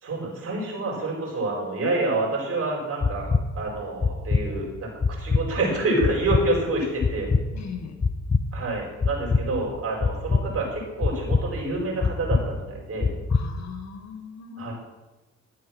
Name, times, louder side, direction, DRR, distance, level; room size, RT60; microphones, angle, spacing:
voice 1, 0.0-3.3 3.5-4.9 5.2-7.3 8.5-13.1 14.6-14.7, right 2 dB, 50° right, -2 dB, 5.0 m, -27 dB
sound 1, 3.0-3.4 4.0-4.4 5.0-5.4 6.0-6.4 7.0-7.4 8.0-8.4 9.0-9.4 10.0-10.4 11.0-11.4 12.0-12.4 13.0-13.4, left 4 dB, 25° left, 0.8 m, -22 dB
voice 2, 7.5-8.0 13.3-14.7, left 7 dB, 60° left, 5 dB, 1.8 m, -38 dB
13.0 x 7.3 x 6.1 m, 1.1 s
cardioid pair, 90°, 30 cm